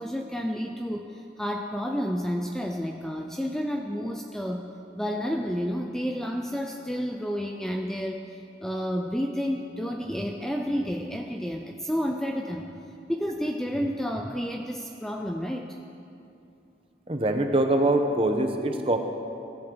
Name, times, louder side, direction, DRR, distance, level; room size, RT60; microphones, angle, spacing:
voice 1, 0.0-4.7 4.9-12.7 13.1-15.7, equal, 5° left, 2 dB, 0.5 m, -30 dB
voice 2, 17.1-19.0, right 1 dB, 30° right, 4 dB, 1.1 m, -23 dB
21.5 x 14.0 x 4.0 m, 2.7 s
head